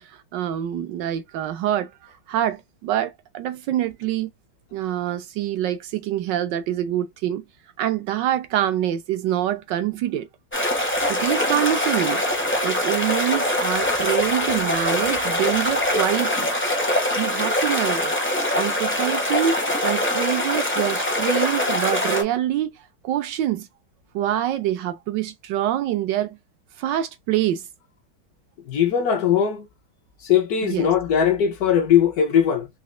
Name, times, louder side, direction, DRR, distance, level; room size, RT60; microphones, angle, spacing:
voice 1, 0.0-4.3 4.7-7.4 7.8-10.3 11.1-12.2 12.6-16.5 17.2-18.1 18.5-19.6 19.8-23.7 24.1-26.4 26.8-27.7 30.6-30.9, right 12 dB, 75° right, 1.0 m, -25 dB
sound 1, 10.5-22.2, left 1 dB, 15° left, 0.3 m, -23 dB
voice 2, 28.7-29.7 30.2-32.7, left 8 dB, 70° left, 0.9 m, -20 dB
4.2 x 2.7 x 2.4 m
omnidirectional pair, 2.3 m